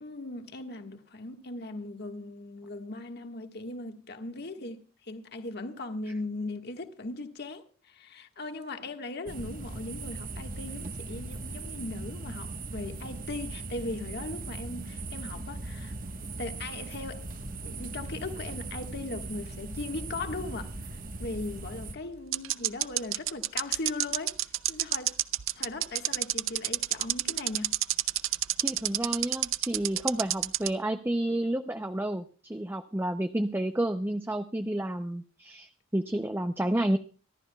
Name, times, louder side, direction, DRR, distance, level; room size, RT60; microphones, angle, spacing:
voice 1, 0.0-15.9 16.4-17.3 17.6-24.4 24.7-25.2 25.5-27.7, left 2 dB, 55° left, 1.5 m, -38 dB
sound 1, 9.3-21.9, right 2 dB, 45° right, 1.2 m, -39 dB
sound 2, 17.8-19.4 19.6-19.7 21.6-21.7 22.3-30.7, right 14 dB, 85° right, 0.6 m, -28 dB
voice 2, 28.6-37.0, right 1 dB, 10° right, 0.6 m, -30 dB
25.0 x 12.5 x 2.3 m
head